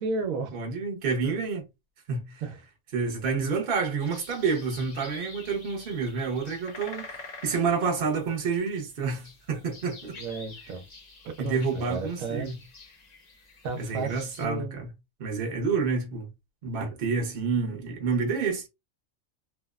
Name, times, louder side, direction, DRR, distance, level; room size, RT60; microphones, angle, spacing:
voice 1, 0.0-0.6 2.4-2.6 10.2-10.8 11.2-12.5 13.6-14.8, right 4 dB, 85° right, 1.0 m, -33 dB
voice 2, 0.5-1.6 2.1-2.4 2.9-10.2 11.4-12.6 13.8-14.9 15.2-16.3 16.6-18.7, right 5 dB, 50° right, 0.9 m, -29 dB
sound 1, 4.0-14.5, left 3 dB, 45° left, 0.6 m, -48 dB
2.9 x 2.0 x 2.2 m
omnidirectional pair, 1.4 m